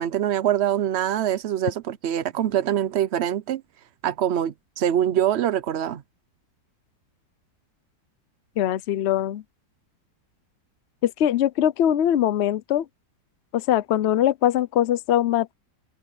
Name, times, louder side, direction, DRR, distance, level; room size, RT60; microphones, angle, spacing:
voice 1, 0.0-3.6 4.0-6.0, right 10 dB, 65° right, 0.6 m, -24 dB
voice 2, 8.6-9.4 11.0-12.8 13.5-15.5, left 11 dB, 55° left, 0.7 m, -22 dB
omnidirectional pair, 1.9 m